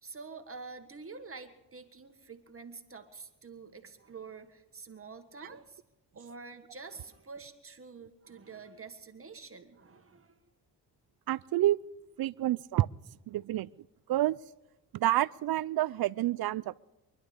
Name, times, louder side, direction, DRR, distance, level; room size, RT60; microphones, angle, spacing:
voice 1, 0.0-5.8 6.1-10.4, right 4 dB, 30° right, 1.6 m, -47 dB
voice 2, 11.3-11.8 12.2-12.9 13.3-13.7 14.1-14.4 14.9-16.7, right 14 dB, 60° right, 0.5 m, -28 dB
24.5 x 11.5 x 5.1 m
cardioid pair, 75°, 42 cm